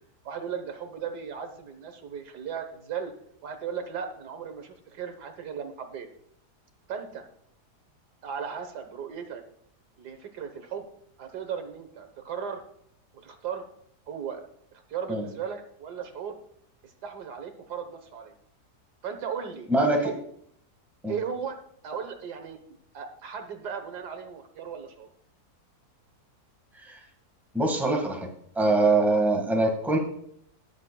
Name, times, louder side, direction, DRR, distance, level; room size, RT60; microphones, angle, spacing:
voice 1, 0.2-3.1 3.4-6.1 6.9-7.3 8.2-9.4 10.0-10.9 11.2-12.6 13.1-13.6 14.1-14.4 14.9-16.4 16.8-18.3 19.0-20.2 21.1-21.6 21.8-22.6 22.9-25.1, right 7 dB, 80° right, 7 dB, 1.7 m, -36 dB
voice 2, 19.7-20.1 21.0-21.1 26.8-27.0 27.5-28.3 28.5-30.0, right 2 dB, ahead, 1 dB, 1.6 m, -23 dB
18.0 x 7.1 x 2.3 m, 0.67 s
omnidirectional pair, 1.7 m